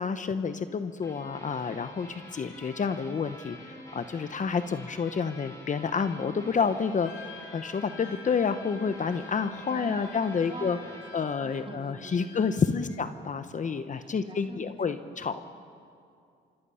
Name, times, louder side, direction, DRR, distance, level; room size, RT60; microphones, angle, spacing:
voice 1, 0.0-7.1 7.5-10.8 11.1-15.4, left 5 dB, 40° left, 10 dB, 1.0 m, -29 dB
sound 1, 1.0-12.3, left 1 dB, 15° left, 6.2 m, -48 dB
Wind instrument woodwind instrument, 7.0-13.0, left 6 dB, 85° left, 1.6 m, -50 dB
voice 2, 9.7-13.2 13.7-15.4, right 2 dB, 25° right, 1 dB, 3.8 m, -46 dB
28.0 x 25.5 x 5.7 m, 2.4 s
cardioid pair, 90°, 20 cm